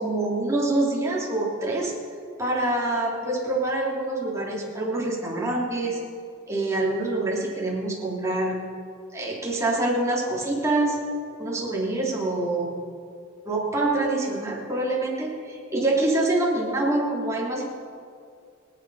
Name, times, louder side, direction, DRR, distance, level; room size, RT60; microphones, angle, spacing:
voice 1, 0.0-1.9 2.4-6.0 6.5-8.6 9.1-11.0 11.4-12.8 13.4-17.6, right 2 dB, 15° right, -4 dB, 3.2 m, -25 dB
24.0 x 9.4 x 4.9 m, 2.2 s
head